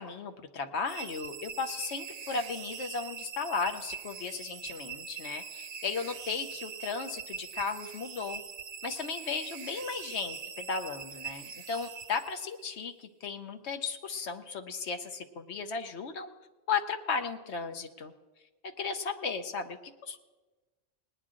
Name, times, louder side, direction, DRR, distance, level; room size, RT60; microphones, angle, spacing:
voice 1, 0.0-8.4 8.8-16.3 16.7-18.1 18.6-20.2, left 5 dB, 80° left, 7 dB, 1.1 m, -35 dB
sound 1, 0.9-12.7, right 7 dB, 55° right, 0.7 m, -43 dB
19.0 x 10.0 x 3.7 m, 1.2 s
omnidirectional pair, 1.1 m